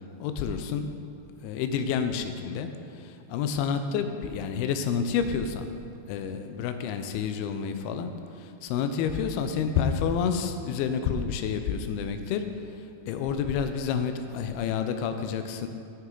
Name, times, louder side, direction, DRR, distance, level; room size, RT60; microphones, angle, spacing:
voice 1, 0.2-0.9 1.4-2.7 3.0-5.7 6.1-8.1 8.4-12.5 13.1-15.7, left 7 dB, 85° left, 8 dB, 2.5 m, -29 dB
9.2 x 8.7 x 3.8 m, 2.5 s
omnidirectional pair, 4.5 m